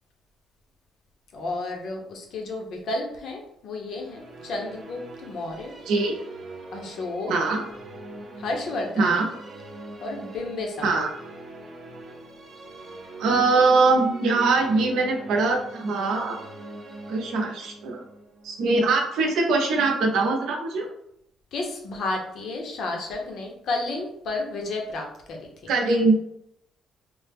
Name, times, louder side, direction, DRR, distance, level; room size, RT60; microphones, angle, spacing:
voice 1, 1.3-5.7 6.7-7.3 8.4-9.1 10.0-11.0 21.5-25.7, left 2 dB, 55° left, 2 dB, 0.7 m, -32 dB
Musical instrument, 3.8-19.2, right 2 dB, 40° right, 0.7 m, -43 dB
voice 2, 7.3-7.6 9.0-9.2 10.8-11.1 13.2-16.4 17.1-18.0 18.4-20.9 25.7-26.2, right 3 dB, 75° right, 2 dB, 0.7 m, -22 dB
3.3 x 2.0 x 3.4 m, 0.76 s
cardioid pair, 160°, 0 cm